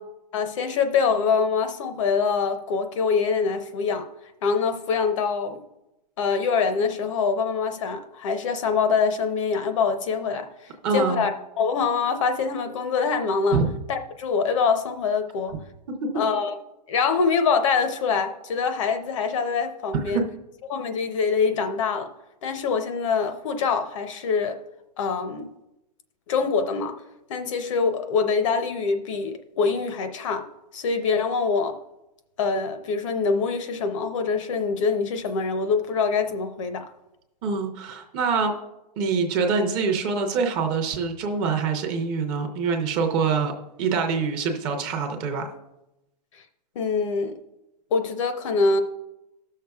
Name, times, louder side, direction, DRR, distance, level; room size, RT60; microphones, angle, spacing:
voice 1, 0.3-4.1 4.4-5.6 6.2-11.3 11.6-13.6 13.9-15.6 16.2-16.6 16.9-20.2 20.7-22.1 22.4-24.6 25.0-25.5 26.3-27.0 27.3-30.5 30.7-31.8 32.4-36.9 46.8-47.4 47.9-48.8, left 5 dB, 50° left, 0.7 m, -24 dB
voice 2, 10.8-11.2 13.5-13.6 20.1-20.2 37.4-38.5 39.0-43.5 43.8-45.5, right 5 dB, 20° right, 0.6 m, -25 dB
19.0 x 6.5 x 2.3 m
supercardioid pair, 175°, 21 cm